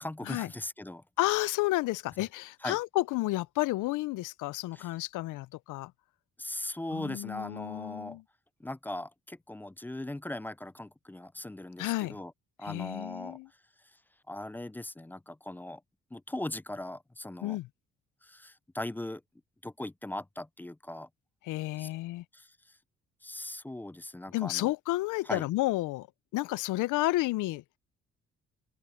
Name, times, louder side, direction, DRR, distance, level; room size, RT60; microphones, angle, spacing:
voice 1, 0.0-1.0 2.6-2.8 4.7-4.9 6.4-8.2 8.6-12.3 12.6-13.4 14.3-15.8 16.1-17.6 18.2-19.2 19.6-21.1 21.8-21.9 22.3-22.5 23.2-24.7 25.3-25.5, left 1 dB, 5° left, 0.3 m, -39 dB
voice 2, 1.2-5.9 6.9-8.2 11.8-12.2 12.6-13.5 17.4-17.7 21.4-22.2 24.3-26.1 26.3-27.6, left 18 dB, 85° left, 0.5 m, -31 dB
open air
cardioid pair, 90°, 30 cm